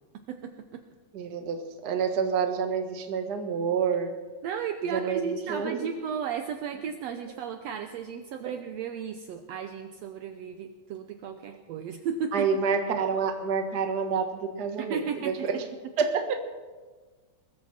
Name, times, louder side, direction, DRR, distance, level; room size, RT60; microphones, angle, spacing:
voice 1, 0.3-0.8 4.4-12.5 14.8-15.5, right 7 dB, 85° right, 7 dB, 1.4 m, -34 dB
voice 2, 1.1-4.1 4.8-5.7 12.3-15.6 16.0-16.4, right 6 dB, 55° right, 5 dB, 1.1 m, -28 dB
21.0 x 14.5 x 4.3 m, 1.3 s
omnidirectional pair, 3.9 m